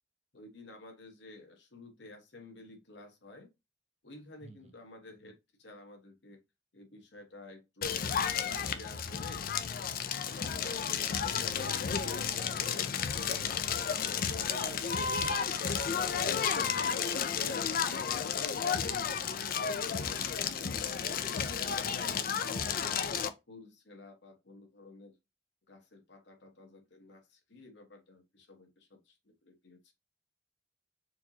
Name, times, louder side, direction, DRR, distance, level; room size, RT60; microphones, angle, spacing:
voice 1, 0.3-3.5 4.0-6.4 6.7-8.0 8.4-9.5 10.0-12.9 13.9-15.2 15.5-21.5 22.2-23.0 23.5-25.1 25.7-29.9, left 2 dB, 70° left, 1.2 m, -52 dB
voice 2, 4.4-4.7 13.3-14.0 14.4-15.4 22.4-22.8, right 2 dB, 35° right, 0.8 m, -51 dB
Crackle, 7.8-23.3, left 7 dB, 55° left, 0.4 m, -32 dB
4.4 x 2.9 x 2.7 m
head